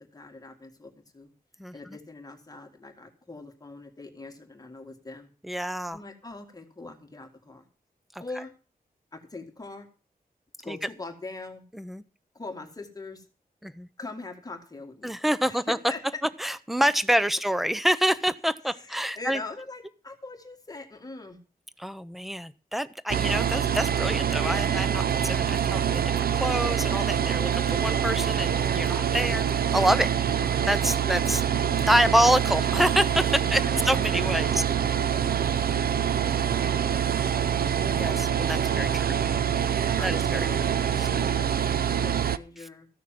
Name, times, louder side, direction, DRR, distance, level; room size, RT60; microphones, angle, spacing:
voice 1, 0.0-1.3 1.7-5.3 5.9-7.6 8.2-8.5 9.1-9.9 10.6-11.6 12.3-13.2 14.0-15.1 15.4-16.2 18.7-21.4 33.6-34.7 34.9-37.7 38.6-39.4 40.0-42.9, left 3 dB, 25° left, 3 dB, 1.9 m, -42 dB
voice 2, 5.4-6.0 10.7-10.8 11.8-12.0 13.6-13.9 15.0-15.8 16.4-19.4 21.8-30.4 30.7-31.4 31.9-34.9 37.9-39.2 40.0-40.5 41.0-41.1, equal, ahead, 15 dB, 0.6 m, -27 dB
sound 1, 23.1-42.4, right 8 dB, 80° right, 0.6 m, -25 dB
14.5 x 6.5 x 7.5 m, 0.36 s
wide cardioid pair, 175°, 15 cm